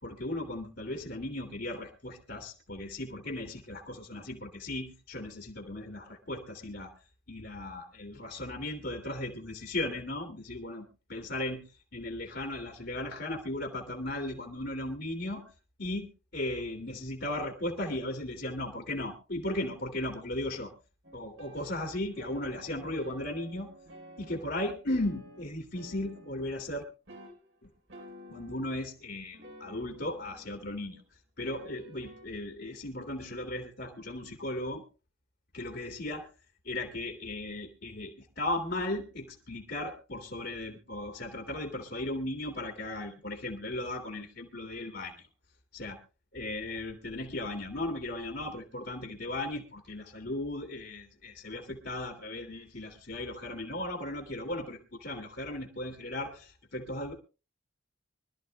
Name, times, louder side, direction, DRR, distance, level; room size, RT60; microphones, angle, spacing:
voice 1, 0.0-6.9 7.3-11.6 11.9-15.4 15.8-16.1 16.3-20.7 21.1-23.7 24.2-26.8 27.6-27.7 28.3-31.0 31.4-34.8 35.5-36.3 36.6-45.3 45.7-46.0 46.3-57.1, left 1 dB, 55° left, 3 dB, 2.1 m, -36 dB
sound 1, 21.0-26.7 27.1-29.0 29.3-31.0 31.4-32.3, equal, 65° right, 3.8 m, -52 dB
25.0 x 13.0 x 2.2 m, 0.32 s
head